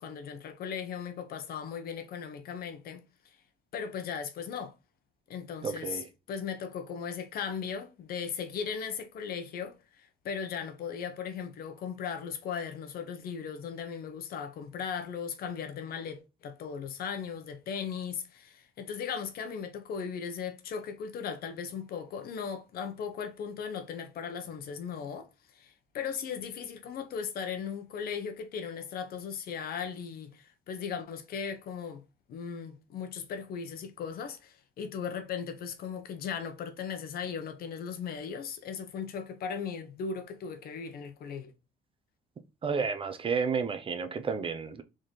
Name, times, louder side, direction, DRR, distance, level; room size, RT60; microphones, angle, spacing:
voice 1, 0.0-3.0 3.7-4.7 5.3-25.3 25.5-32.0 32.3-41.5, left 7 dB, 65° left, 1.0 m, -37 dB
voice 2, 5.6-6.0 42.6-44.8, right 5 dB, 30° right, 0.7 m, -31 dB
4.1 x 3.8 x 3.2 m
cardioid pair, 110°, 17 cm